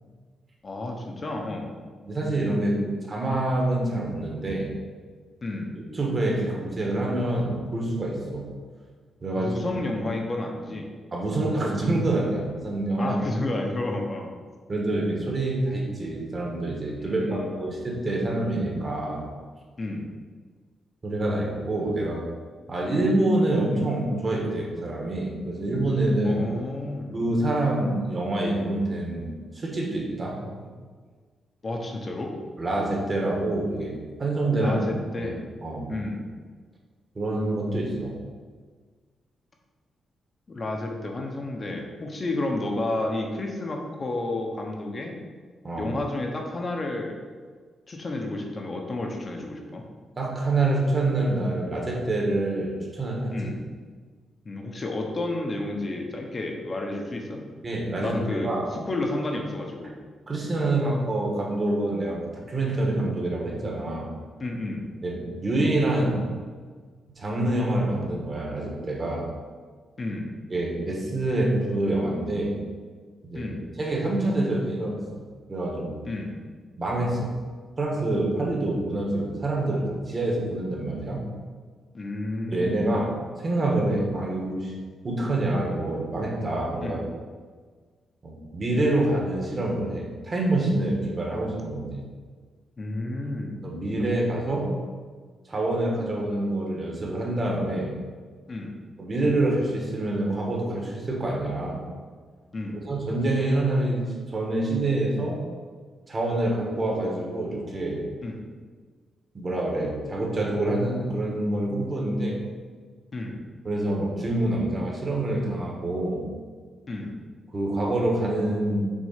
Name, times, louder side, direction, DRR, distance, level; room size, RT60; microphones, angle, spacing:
voice 1, 0.6-1.7 5.4-5.8 9.4-10.9 13.0-14.3 17.0-17.5 19.8-20.1 26.2-27.1 31.6-32.3 34.5-35.4 35.9-36.3 40.5-45.1 45.8-47.2 47.9-49.8 53.3-53.6 54.4-57.4 58.0-59.9 64.4-64.9 70.0-70.3 73.3-73.6 76.0-76.4 81.9-83.1 86.8-87.0 92.8-93.6 98.5-98.7 102.5-102.8 108.2-108.4 113.1-113.4 116.9-117.2, left 2 dB, 30° left, 1 dB, 0.9 m, -31 dB
voice 2, 2.0-2.8 3.1-4.7 5.9-8.4 9.2-9.5 11.1-13.2 14.7-19.3 21.0-22.2 22.7-26.4 27.1-30.7 32.6-34.8 35.2-35.3 35.6-35.9 37.1-38.2 45.6-45.9 50.2-53.3 57.6-58.6 60.3-64.1 65.0-66.2 67.2-69.3 70.5-72.6 73.2-73.5 73.8-75.2 75.5-76.0 76.8-77.3 77.8-81.2 82.5-83.1 83.4-84.7 85.0-87.0 88.2-92.0 93.6-94.7 95.4-97.9 99.0-101.8 102.8-105.4 106.1-108.0 109.3-112.4 113.6-116.3 117.5-118.8, right 2 dB, 30° right, -1 dB, 1.5 m, -26 dB
6.4 x 4.1 x 5.7 m, 1.5 s
wide cardioid pair, 150°, 0 cm